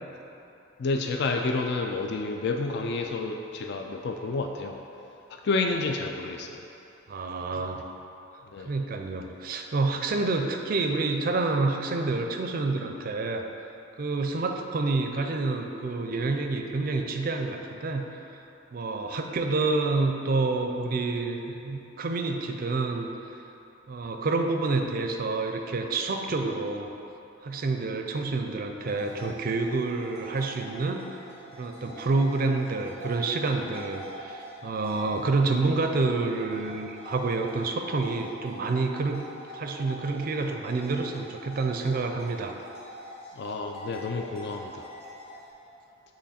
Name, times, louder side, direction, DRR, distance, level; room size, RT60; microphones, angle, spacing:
voice 1, 0.8-4.8 5.3-6.6 7.5-7.6 8.5-8.7 43.4-44.9, left 3 dB, 60° left, 3 dB, 0.4 m, -30 dB
voice 2, 7.1-7.8 8.6-13.4 14.0-18.2 18.7-23.1 23.9-26.9 27.4-31.2 31.5-39.2 39.5-42.5, right 3 dB, 45° right, 4 dB, 0.4 m, -28 dB
sound 1, 28.8-45.5, equal, 30° left, 1.3 m, -45 dB
8.5 x 3.1 x 4.2 m, 3.0 s
head